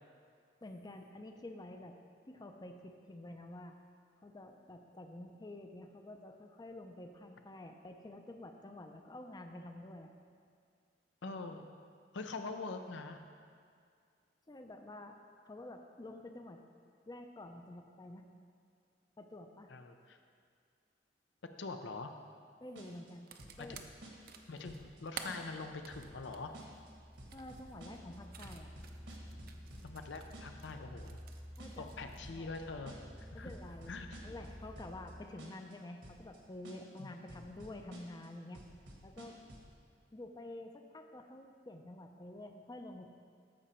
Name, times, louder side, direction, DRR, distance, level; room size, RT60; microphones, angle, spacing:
voice 1, 0.6-2.0 2.3-3.7 4.2-10.1 14.5-15.2 15.4-16.6 17.1-18.2 19.2-19.7 22.6-23.3 23.6-23.7 27.3-28.7 31.6-32.5 33.3-33.9 34.2-38.6 39.0-39.4 40.1-43.1, left 1 dB, 20° left, 5 dB, 0.5 m, -49 dB
voice 2, 11.2-11.6 12.1-13.2 19.7-20.2 21.6-22.1 23.6-23.9 24.5-26.5 29.8-31.2 31.8-33.5 33.9-34.3 37.0-37.4, left 3 dB, 85° left, 6 dB, 0.6 m, -44 dB
sound 1, 22.8-23.1 23.4-24.4 24.6-25.0 25.3-25.6 25.9-26.3 26.5-26.9 27.2-28.2 28.4-30.1 30.3-30.7 31.0-31.3 31.6-32.0 32.2-32.6 32.9-33.2 33.5-34.5 34.8-35.1 35.4-35.7 36.0-36.4 36.6-37.0 37.3-38.3 38.5-39.7, right 1 dB, 75° right, 1.6 m, -53 dB
sound 2, 23.1-30.8 31.0-32.2, right 7 dB, 55° right, 0.6 m, -52 dB
sound 3, 24.0-35.2, equal, 5° right, 0.8 m, -53 dB
13.5 x 5.0 x 4.4 m, 2.2 s
head